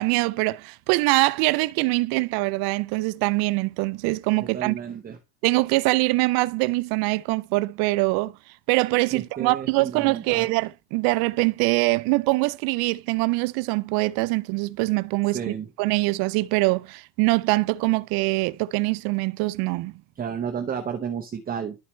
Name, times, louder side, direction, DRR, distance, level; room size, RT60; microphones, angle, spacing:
voice 1, 0.0-4.8 5.4-8.3 8.7-19.9, right 23 dB, 55° right, 0.5 m, -23 dB
voice 2, 4.4-5.2 9.1-10.5 15.3-15.7 20.2-21.8, right 7 dB, 20° right, 0.7 m, -32 dB
11.5 x 4.2 x 3.1 m
supercardioid pair, 135°, 46 cm